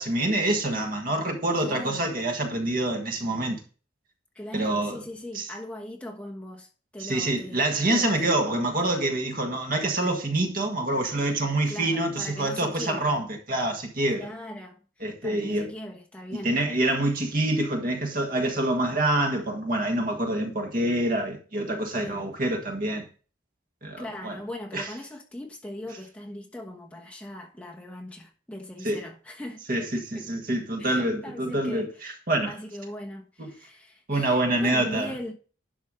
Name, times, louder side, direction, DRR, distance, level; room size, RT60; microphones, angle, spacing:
voice 1, 0.0-3.6 4.5-5.0 5.3-5.5 7.0-14.3 15.0-15.7 16.4-23.1 23.8-24.4 24.7-24.8 28.8-29.0 29.7-32.5 34.1-35.1, right 1 dB, 45° right, 1.5 m, -26 dB
voice 2, 1.6-2.1 4.3-7.6 7.9-8.3 11.7-13.2 14.2-14.8 15.2-16.5 21.9-22.3 24.0-30.2 30.8-32.1 32.5-35.3, left 1 dB, 5° left, 1.2 m, -39 dB
11.5 x 4.5 x 4.8 m
head